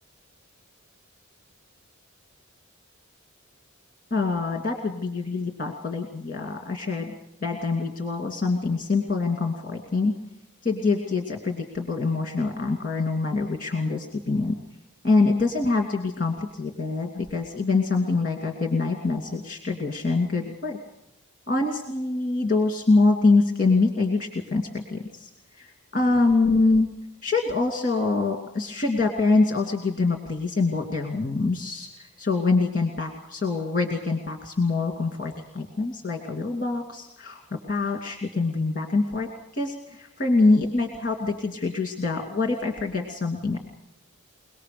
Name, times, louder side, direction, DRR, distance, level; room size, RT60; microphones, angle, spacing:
voice 1, 4.1-7.1 7.4-10.1 10.6-14.6 15.0-20.8 21.5-26.9 27.2-43.6, left 3 dB, 40° left, 2 dB, 2.5 m, -25 dB
24.0 x 19.0 x 6.8 m, 0.85 s
head